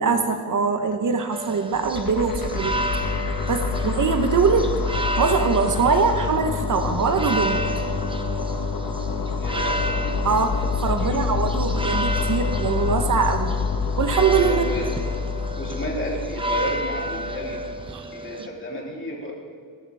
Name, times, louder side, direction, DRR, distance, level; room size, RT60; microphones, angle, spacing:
voice 1, 0.0-2.8 3.5-4.7 5.2-7.6 10.2-13.5 14.0-14.6 17.9-18.1, right 5 dB, 50° right, 7 dB, 1.2 m, -22 dB
sound 1, 1.3-18.5, right 1 dB, 15° right, 1.0 m, -31 dB
sound 2, 1.7-17.9, left 5 dB, 60° left, 1.5 m, -27 dB
voice 2, 9.4-10.2 11.0-11.3 14.5-14.9 15.6-17.6 18.1-19.3, left 1 dB, 30° left, -3 dB, 3.4 m, -32 dB
18.5 x 14.0 x 3.6 m, 2.1 s
cardioid pair, 105°, 39 cm